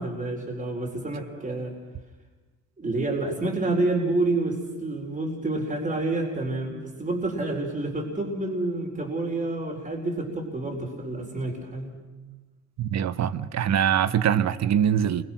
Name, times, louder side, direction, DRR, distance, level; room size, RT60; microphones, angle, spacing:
voice 1, 0.0-1.7 2.8-12.0, right 2 dB, 25° right, 4.4 m, -28 dB
voice 2, 12.8-15.2, right 9 dB, 60° right, 1.1 m, -23 dB
28.5 x 22.5 x 6.2 m
cardioid pair, 90°, 30 cm